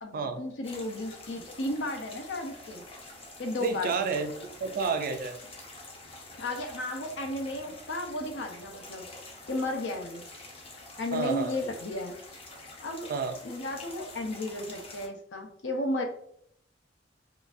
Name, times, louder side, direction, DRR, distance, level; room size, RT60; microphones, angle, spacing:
voice 1, 0.0-2.8 3.4-3.9 6.4-9.1 9.5-10.2 11.0-12.2 12.8-13.1 13.4-16.0, left 1 dB, 70° left, 3 dB, 0.6 m, -34 dB
sound 1, 0.6-15.1, left 2 dB, 30° left, 0.6 m, -47 dB
voice 2, 3.6-5.4 11.1-11.5 13.1-13.4, right 4 dB, 50° right, 7 dB, 0.4 m, -30 dB
3.8 x 2.4 x 2.5 m, 0.68 s
head